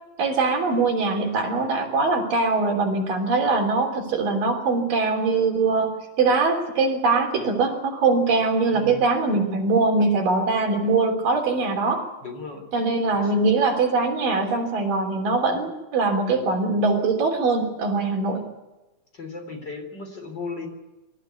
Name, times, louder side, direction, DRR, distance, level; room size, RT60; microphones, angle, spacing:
voice 1, 0.2-12.1 12.7-18.5, right 3 dB, 75° right, 3 dB, 5.0 m, -22 dB
voice 2, 12.2-12.6 13.1-13.4 19.1-20.7, left 4 dB, 30° left, 5 dB, 4.1 m, -36 dB
26.0 x 14.5 x 8.3 m, 1.0 s
omnidirectional pair, 4.0 m